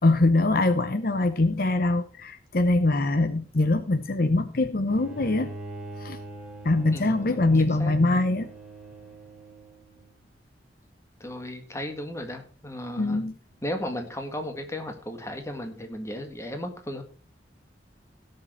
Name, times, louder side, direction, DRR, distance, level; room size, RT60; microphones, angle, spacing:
voice 1, 0.0-5.5 6.0-6.2 6.6-8.5 13.0-13.3, left 2 dB, 55° left, 11 dB, 0.7 m, -23 dB
Bowed string instrument, 4.9-10.1, right 2 dB, 5° right, 2.5 m, -43 dB
voice 2, 6.9-7.5 7.8-7.9 11.2-13.2 13.6-17.0, left 1 dB, 15° left, 5 dB, 1.8 m, -35 dB
17.0 x 6.7 x 4.4 m, 0.39 s
head